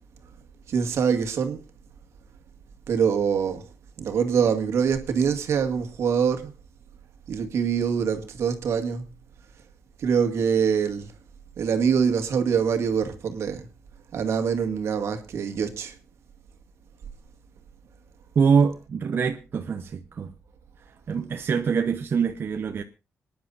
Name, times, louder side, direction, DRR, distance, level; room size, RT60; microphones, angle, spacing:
voice 1, 0.7-1.6 2.9-3.6 4.0-6.5 7.3-9.0 10.0-11.1 11.6-13.7 14.1-15.9, right 7 dB, 75° right, 2.0 m, -24 dB
voice 2, 18.4-20.3 21.1-22.8, right 6 dB, 50° right, 0.9 m, -24 dB
27.0 x 10.0 x 2.7 m
cardioid pair, 115°, 5 cm